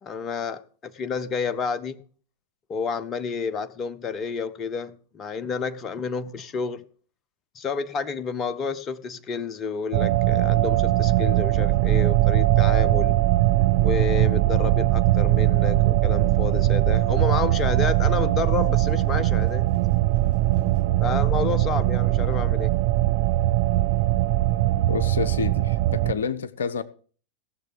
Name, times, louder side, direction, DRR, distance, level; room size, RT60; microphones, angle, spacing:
voice 1, 0.0-2.0 2.7-6.8 7.5-13.2 13.8-19.7 21.0-22.7, left 5 dB, 25° left, 0.6 m, -30 dB
sound 1, 9.9-26.1, right 16 dB, 50° right, 0.5 m, -21 dB
Run, 16.0-20.8, left 4 dB, 50° left, 6.8 m, -47 dB
voice 2, 24.9-26.8, left 5 dB, 65° left, 0.6 m, -29 dB
17.0 x 6.7 x 5.1 m
figure-of-eight pair, 90°, 0 cm